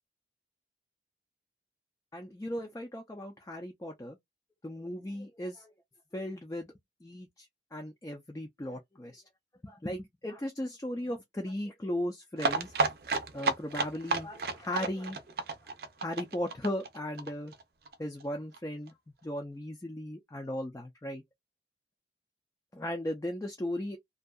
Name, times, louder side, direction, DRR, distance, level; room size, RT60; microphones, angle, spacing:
voice 1, 2.1-4.2 4.6-5.7 6.1-6.7 7.0-9.2 9.6-12.7 13.3-15.2 15.5-15.6 16.0-17.5 18.0-18.9 19.2-21.2 22.7-24.0, left 1 dB, 15° left, 0.4 m, -37 dB
sound 1, 12.4-17.9 18.2-18.3 18.5-18.6 18.9-19.0, right 3 dB, 60° right, 0.5 m, -32 dB
2.6 x 2.3 x 2.2 m
head